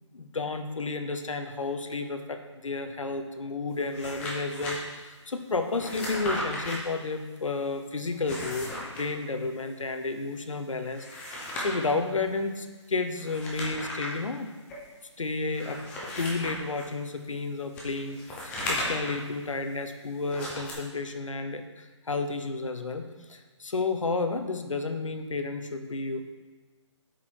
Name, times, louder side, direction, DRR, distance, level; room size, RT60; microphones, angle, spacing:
voice 1, 0.1-14.5 15.2-15.8 16.2-26.4, left 3 dB, 85° left, 8 dB, 1.0 m, -32 dB
sound 1, 3.7-4.7 5.7-6.8 8.1-9.0 10.8-11.9 13.2-14.2 14.7-14.8 15.5-16.9 17.7-19.2 20.2-20.7, left 1 dB, 5° left, 0.8 m, -35 dB
8.2 x 6.3 x 4.6 m, 1.3 s
hypercardioid pair, 165°, 16 cm